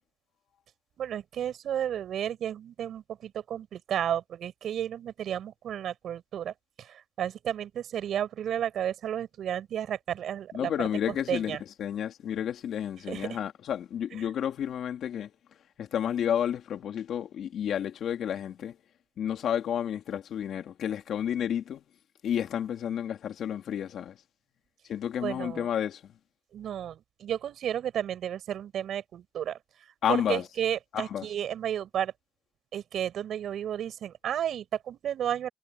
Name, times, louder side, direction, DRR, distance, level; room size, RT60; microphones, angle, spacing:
voice 1, 1.0-10.9 11.3-11.6 13.1-13.4 25.2-25.7 26.5-29.6 30.1-32.1 32.7-35.5, right 10 dB, 70° right, 6.6 m, -32 dB
voice 2, 10.5-15.3 15.8-18.7 19.2-21.8 22.2-24.2 24.9-26.0 30.0-30.4 30.9-31.3, left 9 dB, 70° left, 2.7 m, -31 dB
cardioid pair, 90°, 0 cm